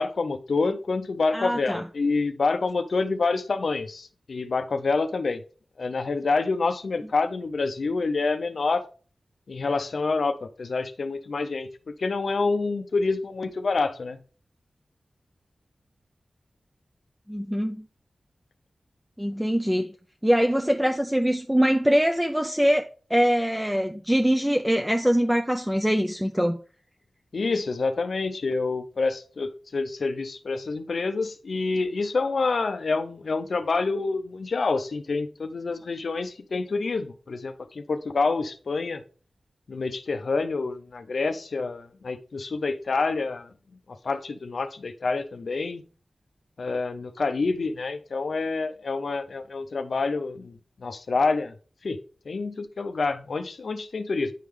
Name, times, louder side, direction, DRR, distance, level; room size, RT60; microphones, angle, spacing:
voice 1, 0.0-5.4 5.8-8.8 9.5-14.2 27.3-39.0 39.7-43.5 44.0-45.8 46.6-50.5 50.8-51.5 51.8-52.0 52.3-54.3, left 3 dB, 75° left, 0.5 m, -27 dB
voice 2, 1.3-1.8 17.3-17.8 19.2-19.9 20.2-22.8 23.1-26.6, equal, 5° right, 0.5 m, -23 dB
10.0 x 3.6 x 3.2 m
cardioid pair, 40°, 0 cm